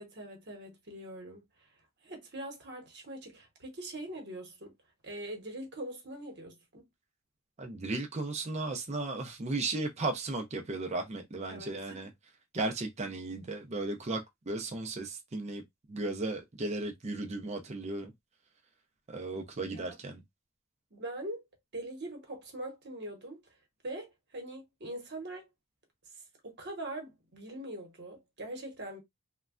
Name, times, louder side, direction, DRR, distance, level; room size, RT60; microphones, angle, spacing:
voice 1, 0.0-1.4 2.0-4.7 5.0-6.8 11.5-12.1 19.7-20.0 20.9-21.4 21.7-23.4 23.8-25.5 26.4-29.0, right 1 dB, 50° right, 1.0 m, -42 dB
voice 2, 7.6-12.1 12.5-15.6 15.9-18.1 19.1-20.2, right 2 dB, 30° right, 0.5 m, -35 dB
3.2 x 2.2 x 2.4 m
head